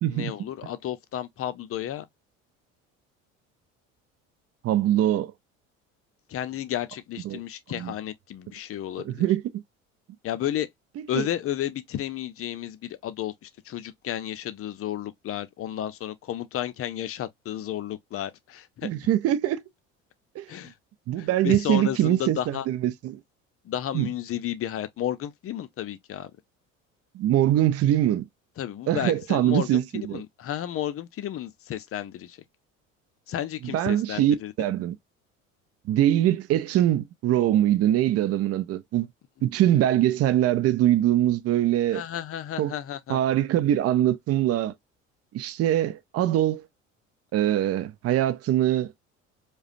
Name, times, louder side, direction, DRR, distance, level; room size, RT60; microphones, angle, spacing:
voice 1, 0.1-2.0 6.3-9.3 10.2-10.7 11.1-18.9 20.5-20.7 21.2-22.7 23.6-26.3 28.6-32.4 33.3-34.5 41.9-43.2, left 11 dB, 35° left, 0.7 m, -32 dB
voice 2, 4.6-5.3 7.2-7.4 7.7-7.9 9.0-9.6 11.1-11.3 18.8-19.6 20.4-20.5 21.1-23.2 23.9-24.1 27.1-28.2 28.9-30.2 33.6-35.0 35.9-39.1 39.4-42.0 42.6-42.7 43.1-44.7 45.3-46.6 47.3-48.9, right 12 dB, 40° right, 0.6 m, -23 dB
4.9 x 2.3 x 2.6 m
figure-of-eight pair, 65°, 40 cm